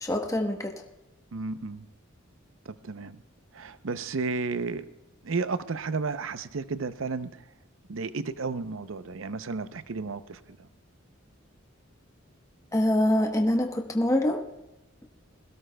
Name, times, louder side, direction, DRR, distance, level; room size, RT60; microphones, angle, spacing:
voice 1, 0.0-0.7 12.7-14.4, left 1 dB, 15° left, 3 dB, 1.0 m, -25 dB
voice 2, 1.3-1.9 2.7-3.2 3.5-4.9 5.2-7.4 7.9-10.4, right 4 dB, 80° right, 12 dB, 0.7 m, -32 dB
21.0 x 16.5 x 2.3 m, 0.98 s
head